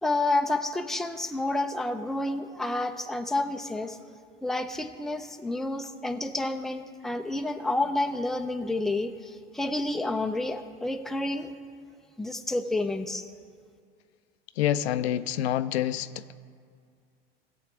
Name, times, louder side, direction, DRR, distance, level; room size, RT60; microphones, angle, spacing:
voice 1, 0.0-4.0 4.4-11.5 12.2-13.2, left 2 dB, ahead, 6 dB, 0.6 m, -29 dB
voice 2, 14.6-16.3, left 11 dB, 80° left, 13 dB, 0.5 m, -27 dB
16.5 x 7.1 x 3.6 m, 2.2 s
hypercardioid pair, 80°, 31 cm